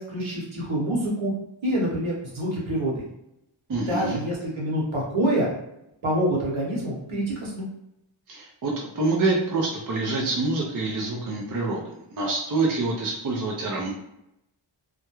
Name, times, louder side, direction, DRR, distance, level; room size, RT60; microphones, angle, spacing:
voice 1, 0.0-1.3 1.6-3.1 3.9-5.5 6.0-7.7, right 1 dB, 70° right, -4 dB, 1.0 m, -26 dB
voice 2, 3.7-4.2 8.3-13.9, right 3 dB, 40° right, -1 dB, 0.5 m, -26 dB
2.3 x 2.1 x 2.9 m, 0.83 s
wide cardioid pair, 90°, 49 cm